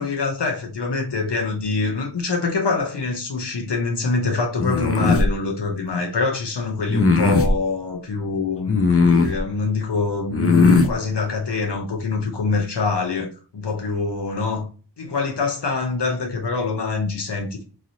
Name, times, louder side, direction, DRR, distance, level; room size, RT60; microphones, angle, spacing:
voice 1, 0.0-14.7 15.0-17.6, left 4 dB, 70° left, 0.7 m, -25 dB
sound 1, 4.6-5.3 6.9-7.5 8.7-9.4 10.3-10.9, left 4 dB, 35° left, 0.5 m, -17 dB
3.0 x 2.6 x 2.7 m
wide cardioid pair, 60°, 42 cm